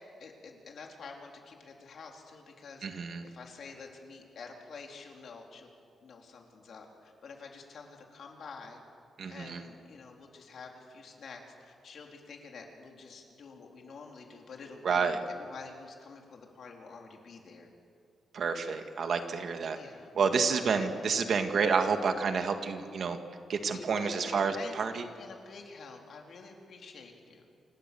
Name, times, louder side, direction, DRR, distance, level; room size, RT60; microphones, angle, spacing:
voice 1, 0.2-5.7 6.0-8.8 9.3-17.7 19.7-20.1 20.7-20.9 23.7-27.5, left 4 dB, 55° left, 1 dB, 3.8 m, -48 dB
voice 2, 2.8-3.2 9.2-9.6 14.8-15.2 18.3-19.8 20.1-23.2 23.5-25.0, right 5 dB, 50° right, 6 dB, 1.8 m, -29 dB
28.5 x 26.5 x 7.0 m, 2.3 s
wide cardioid pair, 170°, 0 cm